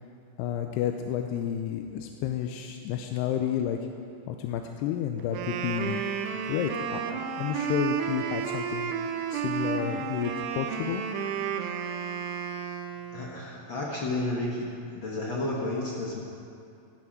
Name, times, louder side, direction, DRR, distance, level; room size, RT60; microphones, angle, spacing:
voice 1, 0.4-3.8 4.3-6.0 6.5-8.9 9.3-11.0, left 10 dB, 90° left, 4 dB, 2.7 m, -31 dB
Wind instrument woodwind instrument, 5.2-13.4, right 7 dB, 85° right, 2.9 m, -32 dB
voice 2, 13.1-14.7 14.9-16.2, left 2 dB, 65° left, -4 dB, 1.2 m, -31 dB
15.0 x 11.0 x 6.5 m, 2.6 s
omnidirectional pair, 4.7 m